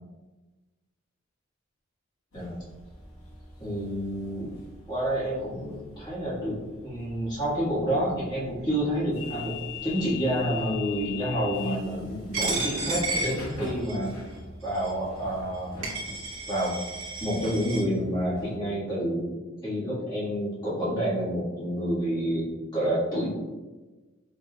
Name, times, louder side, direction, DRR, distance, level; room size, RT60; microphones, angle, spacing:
sound 1, 2.3-18.6, left 4 dB, 70° left, 1.0 m, -43 dB
voice 1, 3.6-4.5 4.9-6.6 6.8-9.6 9.8-14.1 14.6-15.8 16.5-16.7 17.2-19.3 19.6-23.3, equal, 20° left, -10 dB, 1.5 m, -28 dB
Coin (dropping), 12.3-14.1 14.7-14.9 15.5-15.6 15.8-17.8, right 3 dB, 70° right, 1.3 m, -32 dB
5.2 x 3.2 x 2.2 m, 1.2 s
head